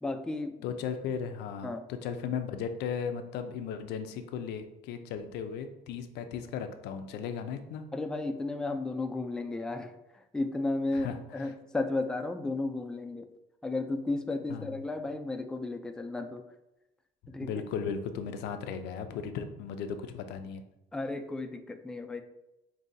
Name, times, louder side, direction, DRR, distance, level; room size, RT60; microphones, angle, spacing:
voice 1, 0.0-0.6 1.6-1.9 7.9-13.3 13.6-16.4 17.3-17.5 20.9-22.2, left 2 dB, 5° left, 6 dB, 0.3 m, -34 dB
voice 2, 0.6-7.9 10.9-11.2 14.5-14.7 17.4-20.6, left 7 dB, 85° left, 8 dB, 0.5 m, -36 dB
5.4 x 2.6 x 2.6 m, 0.92 s
cardioid pair, 110°, 17 cm